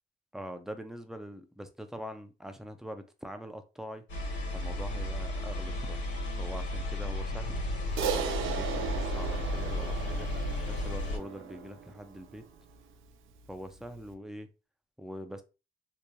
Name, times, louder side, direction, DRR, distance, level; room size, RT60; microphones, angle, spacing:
voice 1, 0.3-4.0 4.5-6.0 6.4-7.6 8.0-10.3 10.7-12.4 13.5-14.5 15.0-15.4, equal, ahead, 7 dB, 0.4 m, -43 dB
sound 1, 4.1-11.2, left 1 dB, 65° left, 1.4 m, -33 dB
Crash cymbal, 8.0-12.5, right 7 dB, 80° right, 0.5 m, -36 dB
2.9 x 2.6 x 2.2 m, 0.30 s
cardioid pair, 90°, 20 cm